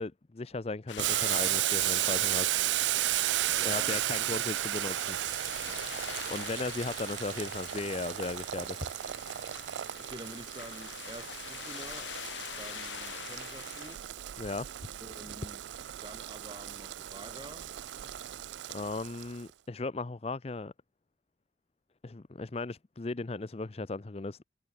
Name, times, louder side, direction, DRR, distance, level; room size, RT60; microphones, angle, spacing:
voice 1, 0.0-2.5 3.7-5.2 5.7-5.8 6.3-9.4 14.4-14.7 18.7-20.7 22.0-24.4, left 3 dB, 35° left, 0.5 m, -37 dB
sound 1, 0.9-14.0, left 10 dB, 85° left, 0.5 m, -45 dB
Boiling, 1.0-19.4, right 14 dB, 80° right, 0.4 m, -34 dB
voice 2, 3.5-4.7 10.0-12.1 12.6-14.0 15.0-15.6 16.0-17.7, right 1 dB, 25° right, 3.4 m, -48 dB
head